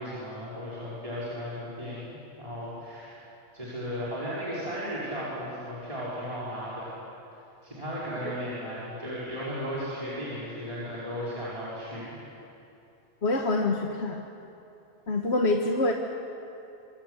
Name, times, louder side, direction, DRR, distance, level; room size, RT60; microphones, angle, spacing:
voice 1, 0.0-3.2 3.5-6.9 7.6-12.2, equal, 30° right, -9 dB, 5.4 m, -35 dB
voice 2, 13.2-14.2 15.1-15.9, left 2 dB, 70° left, 2 dB, 1.8 m, -26 dB
27.0 x 25.5 x 8.3 m, 2.8 s
omnidirectional pair, 1.1 m